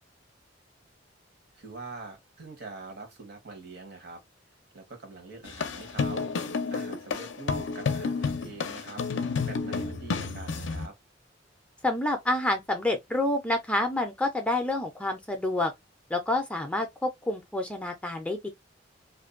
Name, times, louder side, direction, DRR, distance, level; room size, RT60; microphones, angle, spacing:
voice 1, 1.5-4.2 4.7-6.3 6.7-9.0 9.4-10.9, right 3 dB, 60° right, 1.0 m, -44 dB
sound 1, 5.4-10.9, left 4 dB, 70° left, 0.5 m, -31 dB
voice 2, 11.8-15.7 16.1-18.5, left 2 dB, 5° left, 0.4 m, -28 dB
2.5 x 2.2 x 2.4 m
head